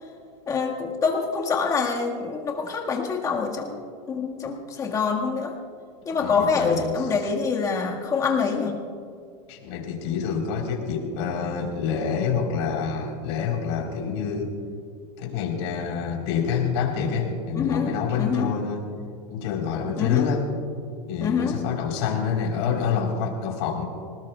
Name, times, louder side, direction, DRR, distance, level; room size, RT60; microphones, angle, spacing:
voice 1, 0.5-3.8 4.1-5.6 6.1-8.8 17.6-18.5 20.0-20.3 21.2-21.6, left 5 dB, 20° left, 0 dB, 1.7 m, -25 dB
voice 2, 6.2-7.1 9.5-14.5 15.2-18.8 19.3-20.4 21.1-23.8, left 6 dB, 60° left, 0 dB, 3.8 m, -27 dB
26.5 x 19.0 x 2.3 m, 2.3 s
supercardioid pair, 155°, 16 cm